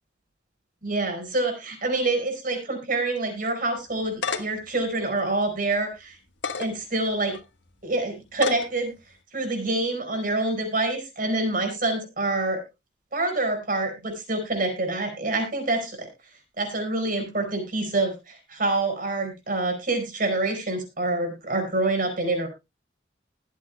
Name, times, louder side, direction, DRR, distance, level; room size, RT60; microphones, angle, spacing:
voice 1, 0.8-6.2 6.6-7.4 7.8-8.9 9.3-12.6 13.1-16.1 16.6-22.5, right 2 dB, 50° right, 3 dB, 5.0 m, -26 dB
sound 1, 3.9-4.7 5.2-5.3 6.3-6.7 7.3-7.4 8.3-8.7, left 5 dB, 80° left, 1.4 m, -29 dB
22.0 x 8.3 x 2.2 m, 0.24 s
head